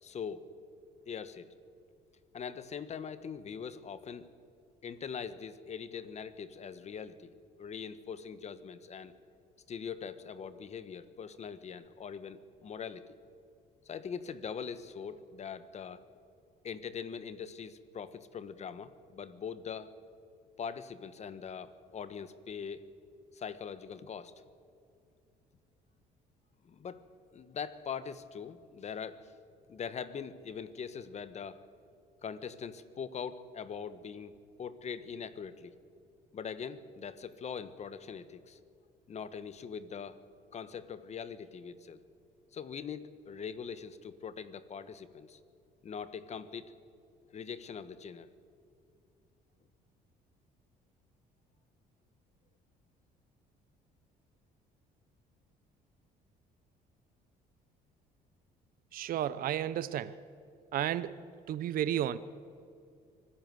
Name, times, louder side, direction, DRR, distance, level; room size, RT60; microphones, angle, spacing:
voice 1, 0.0-0.4 1.1-1.5 2.3-4.3 4.8-7.3 7.6-9.1 9.7-13.1 13.8-16.2 16.6-19.9 20.6-22.8 23.3-24.3 26.6-27.0 27.3-29.3 29.7-31.6 32.2-35.7 36.3-38.6 39.1-40.2 40.5-42.0 42.5-45.4 45.8-46.7 47.3-48.3, left 6 dB, 40° left, 13 dB, 1.3 m, -42 dB
voice 2, 58.9-60.2 60.7-61.2 61.5-62.2, right 11 dB, 60° right, 14 dB, 0.7 m, -32 dB
24.5 x 14.5 x 7.9 m, 2.4 s
cardioid pair, 110°, 17 cm